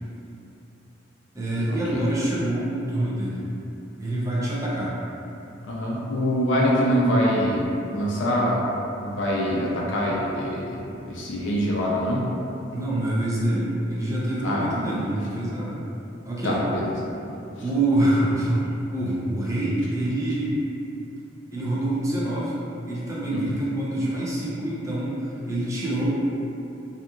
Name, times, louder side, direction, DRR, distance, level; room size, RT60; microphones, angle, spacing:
voice 1, 1.3-3.5 4.0-4.9 12.7-15.8 16.2-16.6 17.6-20.6 21.5-22.5 22.9-26.2, right 1 dB, 15° right, -7 dB, 0.5 m, -26 dB
voice 2, 5.6-7.6 7.9-8.7 9.0-12.3 14.4-14.6 16.4-16.9 23.3-23.4, equal, 80° left, -4 dB, 0.5 m, -24 dB
2.8 x 2.4 x 2.4 m, 2.8 s
head